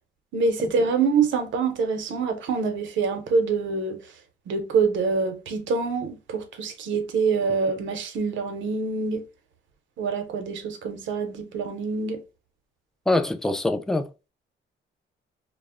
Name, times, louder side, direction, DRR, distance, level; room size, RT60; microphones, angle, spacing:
voice 1, 0.3-4.0 4.5-9.2 10.0-12.2, right 4 dB, 70° right, 0.7 m, -25 dB
voice 2, 13.1-14.1, left 2 dB, 5° left, 0.3 m, -24 dB
2.0 x 2.0 x 3.6 m
cardioid pair, 90°, 20 cm